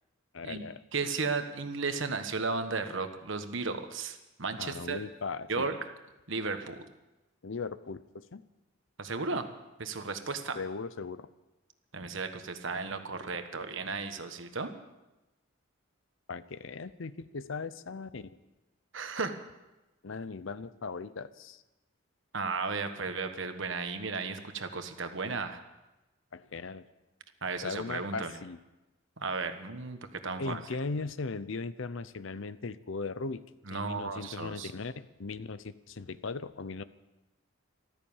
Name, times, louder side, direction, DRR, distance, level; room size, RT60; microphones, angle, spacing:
voice 1, 0.3-0.8 4.6-5.7 7.4-8.4 10.5-11.3 16.3-18.4 20.0-21.6 26.3-26.9 27.6-28.6 30.4-33.4 33.7-36.8, left 4 dB, 65° left, 15 dB, 0.6 m, -38 dB
voice 2, 0.9-5.0 5.5-5.8 6.3-6.8 9.0-9.5 9.8-10.6 11.9-14.7 18.9-19.4 22.3-25.6 27.4-28.3 29.2-30.6 33.7-34.7, right 4 dB, 60° right, 8 dB, 1.3 m, -34 dB
14.5 x 13.5 x 7.2 m, 1.0 s
head